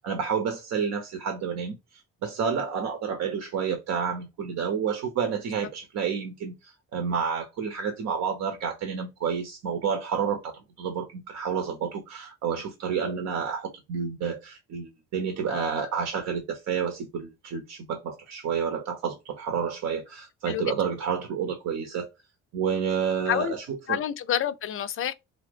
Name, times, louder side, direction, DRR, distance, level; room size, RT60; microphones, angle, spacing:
voice 1, 0.0-1.8 2.2-22.1 22.5-24.0, right 6 dB, 70° right, 0.8 m, -30 dB
voice 2, 23.9-25.1, left 10 dB, 45° left, 0.4 m, -28 dB
2.8 x 2.6 x 3.3 m
cardioid pair, 90°, 30 cm